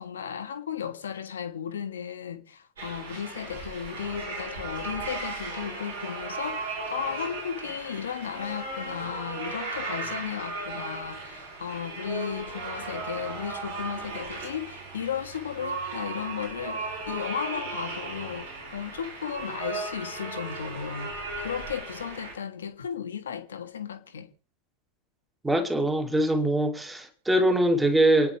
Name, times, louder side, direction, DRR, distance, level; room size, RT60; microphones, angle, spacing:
voice 1, 0.0-24.3, left 8 dB, 65° left, 1.5 m, -35 dB
sound 1, 2.8-22.3, right 3 dB, 65° right, 7.1 m, -36 dB
voice 2, 25.4-28.4, right 1 dB, 10° right, 2.2 m, -23 dB
29.0 x 9.9 x 3.5 m
figure-of-eight pair, 90°, 0 cm